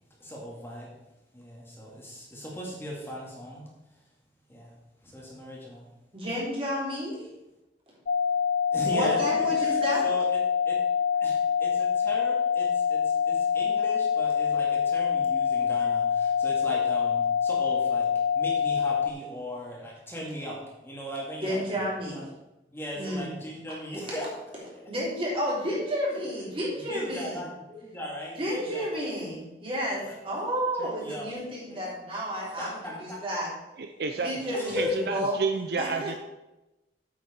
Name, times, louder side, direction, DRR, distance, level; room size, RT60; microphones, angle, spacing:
voice 1, 0.2-0.9 1.3-3.6 4.5-4.7 5.0-5.9 8.7-10.2 10.7-10.8 11.2-21.9 22.1-22.2 22.7-24.3 24.6-24.8 26.9-29.0 30.0-30.1 30.8-31.3 31.7-31.9 32.6-32.9 34.3-35.1, left 1 dB, 15° left, -3 dB, 2.0 m, -38 dB
voice 2, 6.1-7.3 8.9-10.1 21.4-22.2 23.0-23.3 24.9-27.4 28.3-33.5 34.2-35.3 35.8-36.2, equal, 30° right, -5 dB, 3.5 m, -31 dB
sound 1, 8.1-19.1, left 7 dB, 55° left, 0.4 m, -25 dB
voice 3, 33.8-34.3 34.7-36.1, right 4 dB, 60° right, 7 dB, 0.6 m, -30 dB
8.6 x 7.7 x 4.4 m, 0.98 s
head